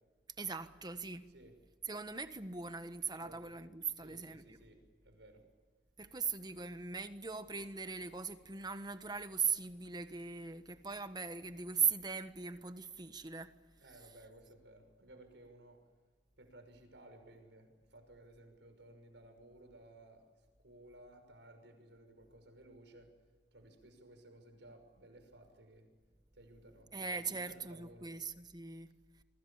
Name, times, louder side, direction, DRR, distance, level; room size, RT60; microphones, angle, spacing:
voice 1, 0.4-1.3 1.9-4.6 6.0-13.5 26.9-28.9, right 5 dB, 25° right, 1.3 m, -39 dB
voice 2, 3.1-3.6 3.9-5.4 13.8-15.8 16.4-20.2 20.6-23.1 23.5-25.9 26.3-28.1, right 1 dB, 85° right, 5.9 m, -58 dB
27.5 x 23.5 x 7.2 m
head